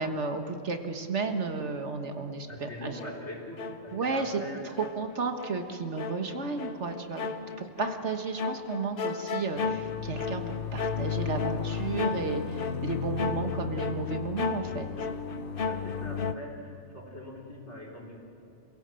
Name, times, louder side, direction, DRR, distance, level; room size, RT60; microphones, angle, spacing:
voice 1, 0.0-3.0 3.9-4.4 5.0-14.9, right 4 dB, 70° right, 6 dB, 1.7 m, -33 dB
voice 2, 2.5-4.6 15.6-18.2, left 1 dB, 65° left, -3 dB, 4.6 m, -42 dB
sound 1, 3.0-4.4 4.8-16.3, left 5 dB, 50° left, 1.0 m, -33 dB
27.5 x 17.0 x 7.7 m, 2.8 s
omnidirectional pair, 1.2 m